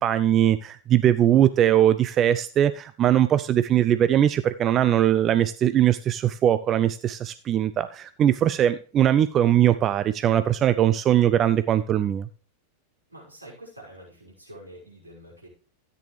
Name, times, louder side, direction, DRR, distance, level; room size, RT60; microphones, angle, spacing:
voice 1, 0.0-12.3, right 11 dB, 30° right, 13 dB, 0.4 m, -21 dB
voice 2, 13.1-15.5, right 1 dB, 80° right, -4 dB, 5.8 m, -46 dB
13.5 x 9.2 x 3.3 m, 0.39 s
figure-of-eight pair, 90°, 0 cm